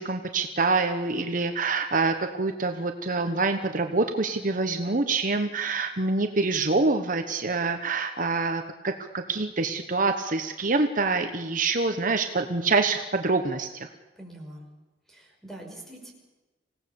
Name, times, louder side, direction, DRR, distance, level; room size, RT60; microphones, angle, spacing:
voice 1, 0.0-13.9, right 3 dB, 50° right, 6 dB, 1.2 m, -26 dB
voice 2, 14.2-14.7 15.1-16.1, right 1 dB, ahead, 1 dB, 5.5 m, -43 dB
26.0 x 17.5 x 7.0 m, 1.1 s
head